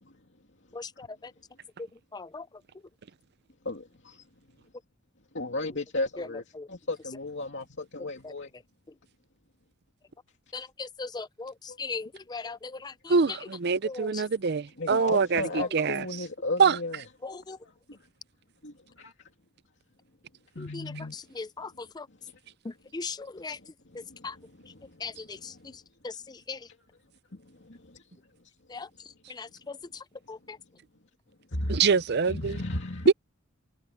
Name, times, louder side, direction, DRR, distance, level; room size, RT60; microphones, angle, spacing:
voice 1, 0.7-1.3 2.1-2.5 6.5-6.7 10.5-13.4 13.8-14.2 17.2-17.6 20.6-22.1 22.6-23.1 23.4-23.5 24.2-24.3 25.0-25.5 26.0-26.6 28.7-28.9 29.3-29.8 30.3-30.6, left 4 dB, 20° left, 0.4 m, -38 dB
voice 2, 3.6-4.2 5.3-8.5 11.7-11.8 14.8-17.1 17.9-18.0 18.6-19.1 20.5-21.1 23.9-25.8 27.3-28.0 31.5-31.9 32.3-33.1, left 2 dB, 55° left, 2.8 m, -35 dB
voice 3, 13.1-15.4 15.7-16.0 16.6-16.7 31.7-32.6 33.1-33.2, right 5 dB, 50° right, 0.5 m, -24 dB
head